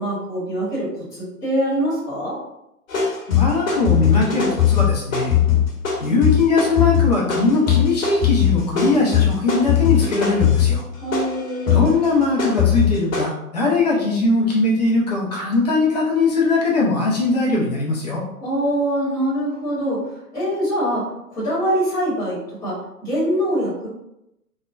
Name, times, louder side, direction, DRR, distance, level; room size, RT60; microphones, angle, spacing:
voice 1, 0.0-2.4 11.0-11.9 18.4-20.0 20.3-21.0 21.3-23.9, right 1 dB, 10° left, -8 dB, 1.0 m, -23 dB
sound 1, 2.9-13.2, left 9 dB, 60° left, 0.9 m, -19 dB
voice 2, 3.3-5.3 6.0-10.8 11.7-18.2, left 3 dB, 30° left, -4 dB, 0.5 m, -20 dB
3.1 x 2.1 x 2.4 m, 0.87 s
figure-of-eight pair, 115°, 45 cm